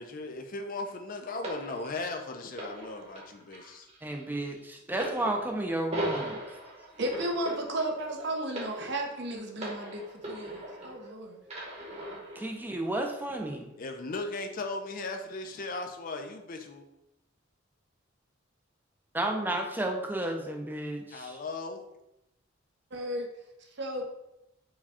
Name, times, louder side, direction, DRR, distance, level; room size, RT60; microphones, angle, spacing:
voice 1, 0.0-3.9 13.8-16.8 21.1-21.8, left 3 dB, 45° left, 5 dB, 0.5 m, -37 dB
sound 1, 1.4-11.1 11.5-12.5 13.3-13.4, right 1 dB, 35° right, 1.0 m, -39 dB
voice 2, 4.0-6.4 12.4-13.7 19.1-21.4, right 1 dB, 10° right, 2 dB, 0.5 m, -32 dB
voice 3, 7.0-11.2 22.9-23.3 23.8-24.0, right 1 dB, 55° right, 2 dB, 0.7 m, -34 dB
4.8 x 2.3 x 4.2 m, 0.88 s
head